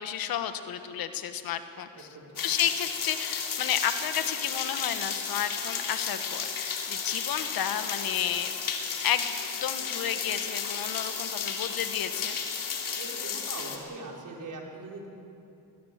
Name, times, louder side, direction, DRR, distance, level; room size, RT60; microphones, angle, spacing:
voice 1, 0.0-2.1 2.4-8.5 9.0-12.4, left 9 dB, 80° left, 9 dB, 1.4 m, -32 dB
sound 1, 2.4-13.8, left 6 dB, 65° left, 2.9 m, -33 dB
voice 2, 13.0-15.1, right 2 dB, 60° right, 0 dB, 4.5 m, -41 dB
20.5 x 19.5 x 7.5 m, 2.7 s
cardioid pair, 75°, 35 cm